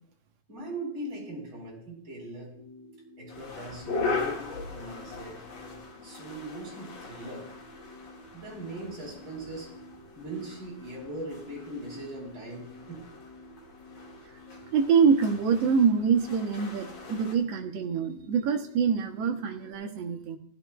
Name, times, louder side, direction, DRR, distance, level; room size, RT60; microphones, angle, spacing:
voice 1, 0.5-2.6 3.2-4.4 4.7-5.5 6.0-7.5 8.3-9.7 10.2-13.0, right 1 dB, 40° right, -2 dB, 4.4 m, -40 dB
sound 1, 2.5-19.7, left 1 dB, 15° left, 1.8 m, -51 dB
sound 2, 3.3-17.4, left 4 dB, 80° left, 3.4 m, -40 dB
voice 2, 14.7-20.4, right 6 dB, 65° right, 4 dB, 1.8 m, -25 dB
16.0 x 12.5 x 2.3 m, 0.62 s
omnidirectional pair, 3.5 m